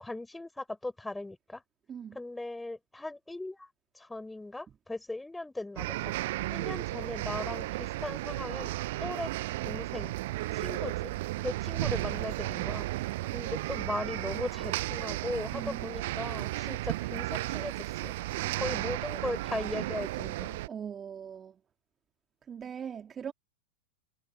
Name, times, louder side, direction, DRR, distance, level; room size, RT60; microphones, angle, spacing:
voice 1, 0.0-1.6 2.1-3.7 3.9-8.7 9.0-9.3 9.6-10.2 10.5-11.1 11.4-12.9 13.2-18.1 18.6-20.6, left 2 dB, 5° left, 6.5 m, -38 dB
voice 2, 1.9-2.2 15.5-15.9 20.7-21.6 22.4-23.3, right 8 dB, 20° right, 2.2 m, -41 dB
sound 1, 5.8-20.7, right 18 dB, 50° right, 0.9 m, -34 dB
figure-of-eight pair, 90°, 0 cm